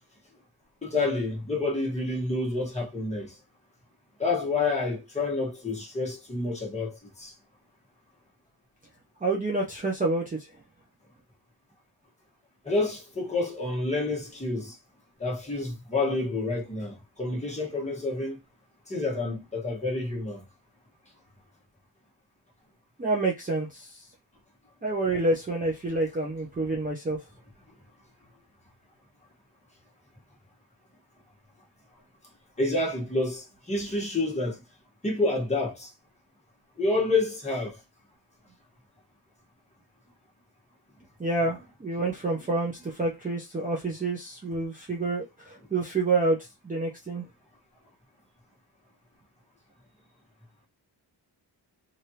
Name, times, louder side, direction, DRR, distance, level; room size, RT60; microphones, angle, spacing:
voice 1, 0.8-3.3 4.2-7.3 12.6-14.8 15.2-18.4 18.9-20.4 32.6-34.6 35.0-35.9 36.8-37.8, left 2 dB, 15° left, 1.3 m, -28 dB
voice 2, 9.2-10.4 23.0-23.9 24.8-27.2 41.2-46.4 46.6-47.2, right 2 dB, 20° right, 0.6 m, -28 dB
3.3 x 2.6 x 2.8 m
wide cardioid pair, 130°, 44 cm